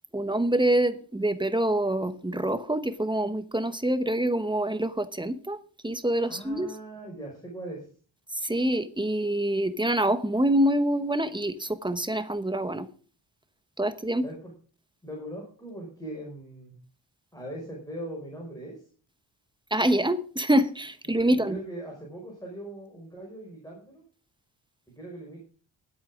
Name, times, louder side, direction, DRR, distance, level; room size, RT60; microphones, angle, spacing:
voice 1, 0.1-5.6 5.8-6.7 8.3-12.9 13.8-14.3 19.7-21.6, right 1 dB, 10° right, 1.0 m, -26 dB
voice 2, 6.3-7.9 14.2-14.5 15.0-16.7 17.3-18.8 21.3-24.0 24.9-25.4, right 1 dB, 10° left, 5.7 m, -40 dB
20.5 x 8.6 x 3.7 m
wide cardioid pair, 130°, 47 cm